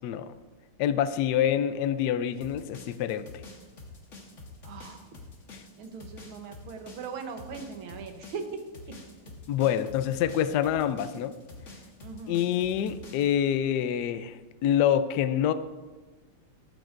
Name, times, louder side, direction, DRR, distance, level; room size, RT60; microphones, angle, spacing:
voice 1, 0.0-0.3 0.8-3.3 5.5-5.6 9.5-11.4 12.3-15.5, left 10 dB, 80° left, 12 dB, 0.9 m, -26 dB
sound 1, 2.4-13.3, left 2 dB, 40° left, 1.5 m, -47 dB
voice 2, 4.6-5.0 5.8-8.4 12.0-12.5, right 5 dB, 70° right, 5 dB, 1.8 m, -40 dB
13.0 x 12.0 x 2.5 m, 1.2 s
omnidirectional pair, 2.4 m